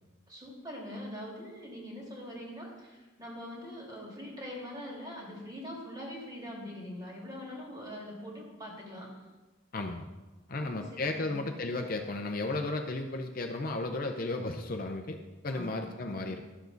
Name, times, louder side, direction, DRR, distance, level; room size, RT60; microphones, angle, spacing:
voice 1, 0.3-9.2 10.6-11.4 15.5-16.4, left 1 dB, 20° right, -3 dB, 2.2 m, -43 dB
voice 2, 9.7-10.0 10.5-15.2 15.4-16.4, left 2 dB, 45° left, 4 dB, 0.6 m, -34 dB
12.0 x 7.1 x 3.9 m, 1.2 s
head